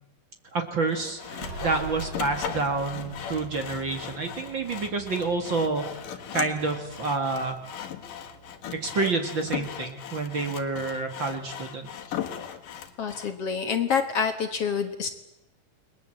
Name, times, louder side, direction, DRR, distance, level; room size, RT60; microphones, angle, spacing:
voice 1, 0.5-1.2 1.6-6.1 6.3-7.6 8.7-11.9, right 3 dB, 40° right, 6 dB, 2.3 m, -28 dB
Sawing, 0.9-13.3, left 9 dB, 80° left, 3.2 m, -38 dB
sound 1, 1.0-12.3, right 2 dB, 85° right, 7.8 m, -45 dB
voice 2, 13.0-15.1, left 6 dB, 55° left, 7 dB, 2.1 m, -27 dB
29.5 x 21.5 x 7.8 m, 0.89 s
omnidirectional pair, 3.8 m